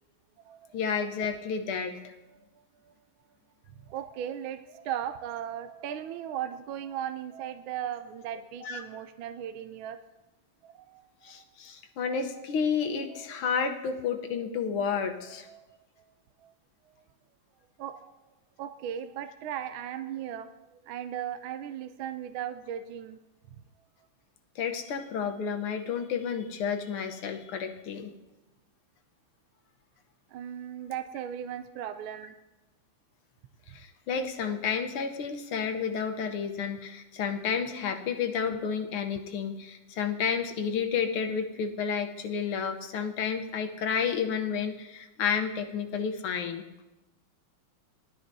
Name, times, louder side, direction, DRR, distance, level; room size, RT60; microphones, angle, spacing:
voice 1, 0.7-2.0 8.6-8.8 11.2-15.5 24.6-28.1 33.7-46.7, left 6 dB, 80° left, 5 dB, 1.8 m, -31 dB
voice 2, 3.9-10.0 10.6-11.1 11.3-11.4 12.3-12.4 13.1-13.2 15.5-15.7 16.4-16.5 17.8-18.1 18.6-23.2 30.3-32.3, right 10 dB, 75° right, 9 dB, 1.3 m, -37 dB
19.5 x 12.5 x 2.7 m, 1.0 s
omnidirectional pair, 2.4 m